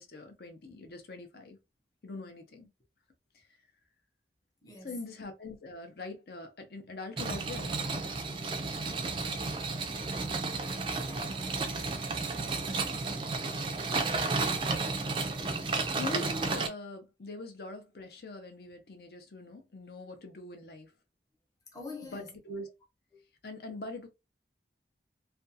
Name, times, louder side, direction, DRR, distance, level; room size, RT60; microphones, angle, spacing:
voice 1, 0.0-1.6 2.0-2.7 3.3-3.5 4.8-7.8 15.9-20.9 22.0-22.7 23.4-24.1, left 2 dB, 60° left, 0.6 m, -43 dB
voice 2, 4.6-5.0 10.7-13.2 15.4-15.9 21.7-22.3 23.1-23.2, left 2 dB, 20° left, 0.8 m, -49 dB
sound 1, 7.2-16.7, right 3 dB, 30° right, 0.3 m, -32 dB
2.5 x 2.3 x 2.6 m
head